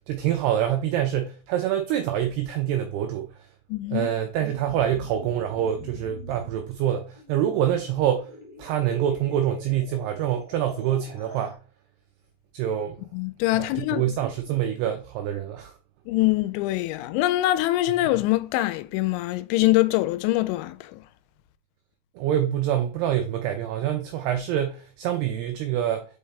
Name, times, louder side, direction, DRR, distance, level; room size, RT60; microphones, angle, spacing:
voice 1, 0.1-3.3 3.9-8.3 8.6-11.6 12.5-13.0 13.5-15.7 22.2-26.1, right 10 dB, 85° right, 2.3 m, -26 dB
voice 2, 3.7-4.1 13.1-14.1 16.1-21.0, left 17 dB, 85° left, 2.9 m, -24 dB
sound 1, 4.7-11.5, equal, 25° left, 0.9 m, -44 dB
5.6 x 5.3 x 3.3 m
omnidirectional pair, 5.3 m